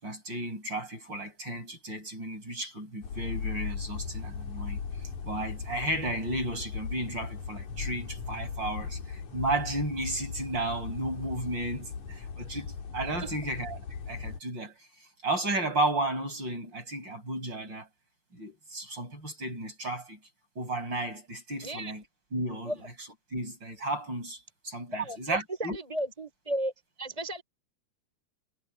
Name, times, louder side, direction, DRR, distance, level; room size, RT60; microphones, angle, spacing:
voice 1, 0.0-4.8 5.2-13.8 14.1-14.8 15.2-17.9 18.3-20.2 20.6-22.0 22.3-22.8 23.3-25.8, right 2 dB, 35° right, 7.1 m, -33 dB
sound 1, 3.0-14.4, left 5 dB, 80° left, 4.1 m, -38 dB
voice 2, 21.6-21.9 22.6-22.7 24.9-26.7 27.0-27.4, right 1 dB, 10° right, 4.4 m, -34 dB
omnidirectional pair, 3.3 m